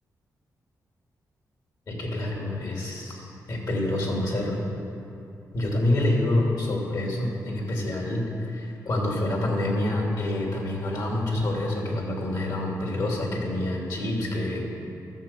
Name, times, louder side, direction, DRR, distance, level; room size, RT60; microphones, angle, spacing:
voice 1, 1.9-4.6 5.5-14.7, left 1 dB, 65° left, -1 dB, 3.0 m, -27 dB
13.5 x 6.8 x 7.4 m, 2.8 s
cardioid pair, 90°, 7 cm